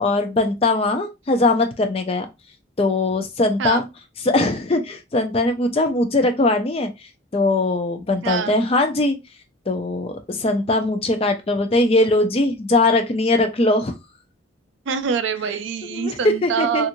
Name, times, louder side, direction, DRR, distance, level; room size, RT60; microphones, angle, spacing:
voice 1, 0.0-2.3 2.8-3.8 4.2-6.9 7.3-9.2 9.7-13.9 15.8-16.9, left 2 dB, 30° left, 0.4 m, -20 dB
voice 2, 14.9-16.9, right 6 dB, 70° right, 0.4 m, -24 dB
2.9 x 2.4 x 2.6 m
head